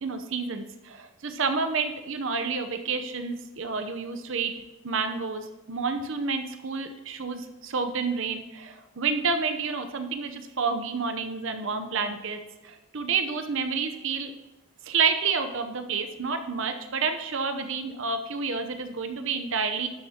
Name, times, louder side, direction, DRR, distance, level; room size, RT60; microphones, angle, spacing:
voice 1, 0.0-14.3 14.8-19.9, right 5 dB, 60° right, 8 dB, 0.7 m, -29 dB
12.0 x 7.2 x 2.9 m, 1.0 s
head